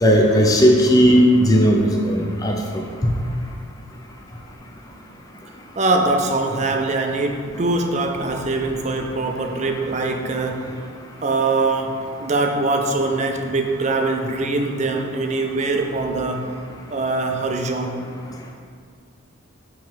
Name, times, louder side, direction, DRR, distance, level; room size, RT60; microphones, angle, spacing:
voice 1, 0.0-2.8, equal, 15° left, 0 dB, 0.5 m, -16 dB
voice 2, 5.8-10.8 11.2-16.6 16.9-18.1, right 3 dB, 35° right, 4 dB, 0.4 m, -23 dB
7.4 x 3.1 x 4.5 m, 2.1 s
head